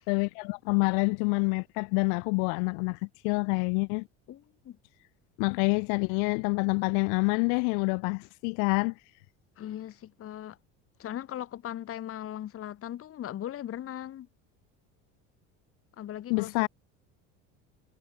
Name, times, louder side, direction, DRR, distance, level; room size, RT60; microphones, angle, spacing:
voice 1, 0.1-3.0 3.2-4.0 5.4-8.9 16.3-16.7, left 40 dB or more, 75° left, 1.1 m, -27 dB
voice 2, 4.3-4.8 9.6-10.6 11.0-14.3 16.0-16.7, left 11 dB, 40° left, 1.2 m, -39 dB
supercardioid pair, 100°, 35 cm